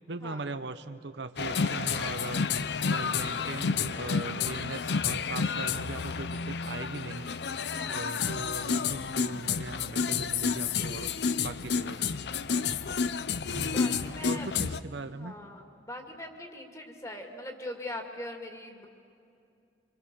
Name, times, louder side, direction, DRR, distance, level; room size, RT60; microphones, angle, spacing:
voice 1, 0.1-2.4 2.8-7.6 7.9-11.1 11.4-12.1 13.5-15.4, right 3 dB, 75° right, 10 dB, 0.9 m, -40 dB
sound 1, 1.4-14.8, left 5 dB, 70° left, 0.6 m, -30 dB
voice 2, 7.7-8.1 13.6-14.5 15.1-18.9, left 1 dB, 20° left, 3 dB, 2.3 m, -41 dB
26.5 x 24.5 x 6.9 m, 2.5 s
head